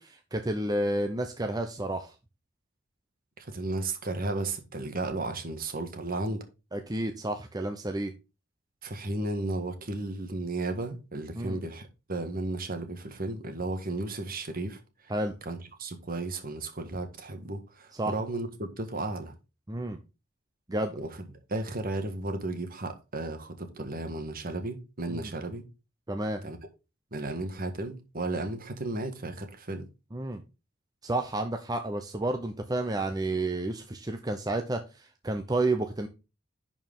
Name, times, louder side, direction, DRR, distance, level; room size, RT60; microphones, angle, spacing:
voice 1, 0.0-2.1 6.7-8.1 11.3-11.6 15.1-15.3 18.0-18.1 19.7-20.0 20.7-20.9 25.1-25.3 26.1-26.4 30.1-30.4 31.0-34.8 35.2-36.1, right 2 dB, 20° right, 0.7 m, -30 dB
voice 2, 3.4-6.4 8.8-14.8 15.4-19.3 21.0-25.6 26.4-26.6 27.1-29.8, right 2 dB, 45° right, 1.6 m, -34 dB
11.0 x 4.7 x 3.7 m
head